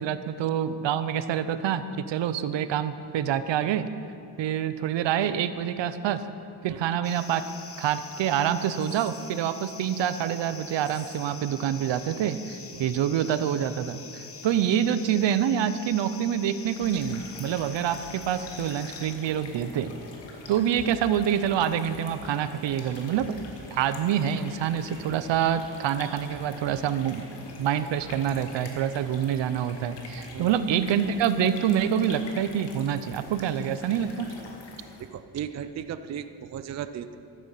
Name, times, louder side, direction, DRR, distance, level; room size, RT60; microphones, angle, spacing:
voice 1, 0.0-3.9 4.4-6.2 6.6-7.4 7.8-19.9 20.5-23.4 23.7-27.2 27.6-34.3, right 9 dB, 80° right, 12 dB, 0.8 m, -26 dB
sound 1, 7.0-19.2, left 5 dB, 30° left, 1.0 m, -45 dB
sound 2, 16.5-35.1, left 3 dB, 75° left, 2.2 m, -45 dB
voice 2, 35.1-37.2, right 8 dB, 40° right, 11 dB, 0.5 m, -35 dB
12.5 x 9.6 x 7.5 m, 2.6 s
wide cardioid pair, 160°, 43 cm